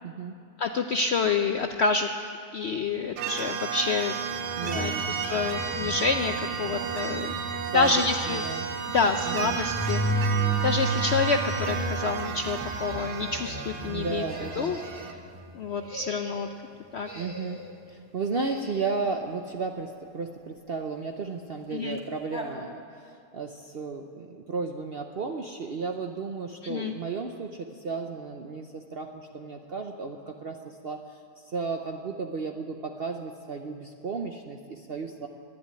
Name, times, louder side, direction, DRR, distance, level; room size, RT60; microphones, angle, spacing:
voice 1, 0.0-0.4 4.6-5.2 7.6-7.9 8.3-8.7 9.3-9.6 13.8-14.7 17.1-17.6 17.9-31.2 31.5-35.3, right 4 dB, 55° right, 4 dB, 0.6 m, -34 dB
voice 2, 0.6-4.2 4.6-7.4 7.7-8.5 8.9-10.3 10.6-14.2 14.6-14.8 15.5-16.5 16.9-17.1 21.7-22.0 26.6-26.9, left 4 dB, 65° left, 6 dB, 0.6 m, -28 dB
sound 1, 3.2-15.1, right 6 dB, 85° right, 1.5 m, -33 dB
sound 2, 4.2-15.8 22.0-22.1 22.3-22.5, right 1 dB, 5° right, 1.9 m, -34 dB
sound 3, 12.8-13.7 14.2-15.2 15.7-16.5 17.0-17.8 18.3-19.0, equal, 15° left, 1.5 m, -43 dB
11.5 x 10.5 x 9.7 m, 2.4 s
omnidirectional pair, 1.8 m